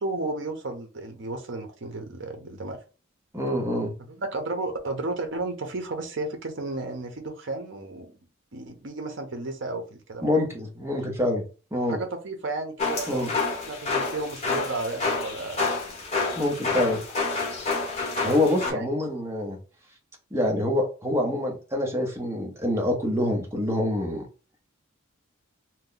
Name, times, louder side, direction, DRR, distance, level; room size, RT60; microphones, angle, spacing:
voice 1, 0.0-2.8 4.1-8.1 8.5-10.4 11.9-13.3 13.7-15.7 18.7-18.9, right 2 dB, 60° right, 5 dB, 0.7 m, -33 dB
voice 2, 3.3-3.9 10.2-11.4 11.7-12.0 13.1-13.3 16.4-17.0 18.2-19.6 20.3-24.2, left 1 dB, 15° right, 0 dB, 0.8 m, -26 dB
sound 1, 12.8-18.7, left 3 dB, 30° left, 0.9 m, -28 dB
2.9 x 2.1 x 3.8 m, 0.35 s
head